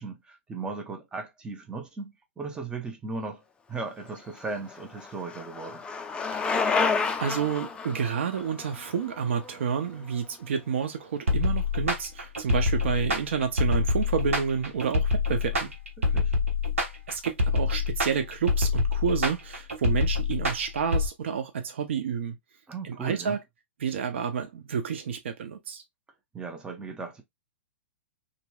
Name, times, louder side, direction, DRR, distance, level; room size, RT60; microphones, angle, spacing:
voice 1, 0.0-3.4 3.7-5.8 16.0-16.3 22.7-23.4 26.3-27.2, right 4 dB, 10° right, 0.7 m, -37 dB
Bicycle, 4.2-10.1, left 4 dB, 15° left, 0.4 m, -30 dB
voice 2, 6.3-6.8 7.2-15.7 17.1-22.4 22.8-23.4 23.8-25.8, right 7 dB, 65° right, 0.6 m, -29 dB
sound 1, 11.3-21.1, left 3 dB, 80° right, 0.9 m, -26 dB
2.9 x 2.7 x 2.2 m
figure-of-eight pair, 110°, 7 cm